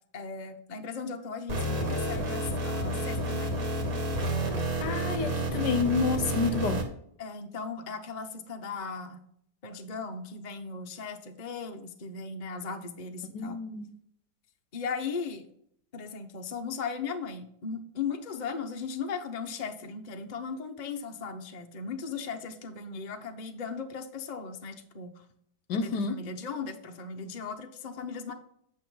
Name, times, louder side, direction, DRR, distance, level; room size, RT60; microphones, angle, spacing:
voice 1, 0.1-3.5 7.2-9.2 9.6-13.6 14.7-15.5 15.9-25.2 25.7-28.3, left 5 dB, 40° left, 4 dB, 0.6 m, -37 dB
sound 1, 1.5-6.8, right 1 dB, 50° right, 2.2 m, -30 dB
voice 2, 4.8-6.8 13.3-14.0 25.7-26.2, left 5 dB, 65° left, 10 dB, 1.2 m, -29 dB
9.0 x 6.6 x 3.9 m, 0.70 s
omnidirectional pair, 2.2 m